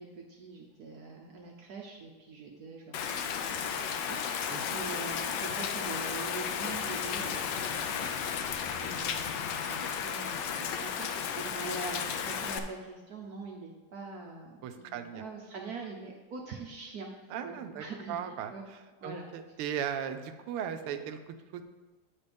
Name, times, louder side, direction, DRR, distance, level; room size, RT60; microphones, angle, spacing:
voice 1, 0.0-8.1 8.8-18.6 19.0-19.3, right 4 dB, 65° right, 0 dB, 1.0 m, -44 dB
Rain, 2.9-12.6, left 7 dB, 75° left, 1.1 m, -34 dB
voice 2, 14.6-15.2 17.3-18.5 19.0-21.6, right 8 dB, 90° right, 9 dB, 1.5 m, -37 dB
9.2 x 4.3 x 5.2 m, 1.3 s
omnidirectional pair, 2.4 m